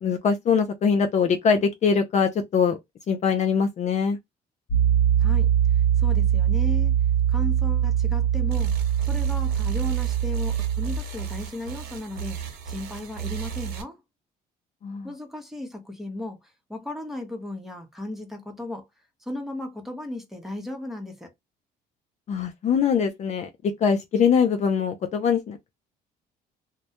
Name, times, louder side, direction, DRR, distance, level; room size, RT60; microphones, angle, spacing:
voice 1, 0.0-2.8 3.1-4.2 14.8-15.1 22.3-25.7, left 6 dB, 45° left, 0.4 m, -23 dB
Piano, 4.7-11.0, right 10 dB, 70° left, 0.8 m, -22 dB
voice 2, 5.2-6.9 7.3-8.7 9.0-14.0 15.0-16.4 16.7-18.9 19.3-21.3, left 1 dB, ahead, 0.8 m, -35 dB
sound 1, 8.5-13.8, right 3 dB, 70° right, 0.9 m, -36 dB
2.2 x 2.1 x 2.8 m
cardioid pair, 110°, 17 cm